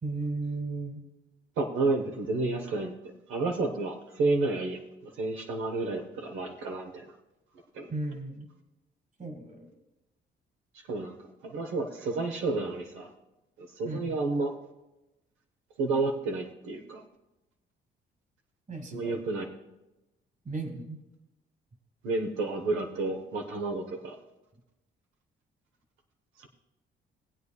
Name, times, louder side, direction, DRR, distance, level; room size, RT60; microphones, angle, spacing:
voice 1, 0.0-1.0 7.9-8.5 9.2-9.7 13.8-14.3 18.7-19.2 20.4-21.0, right 3 dB, 40° right, 6 dB, 1.7 m, -35 dB
voice 2, 1.6-2.9 3.3-7.1 7.7-7.9 10.9-11.1 11.4-13.1 13.6-14.5 15.8-17.0 18.9-19.5 22.0-24.2 26.4-26.5, right 3 dB, 85° right, 3 dB, 1.0 m, -30 dB
19.0 x 8.2 x 2.3 m, 0.98 s
cardioid pair, 90°, 20 cm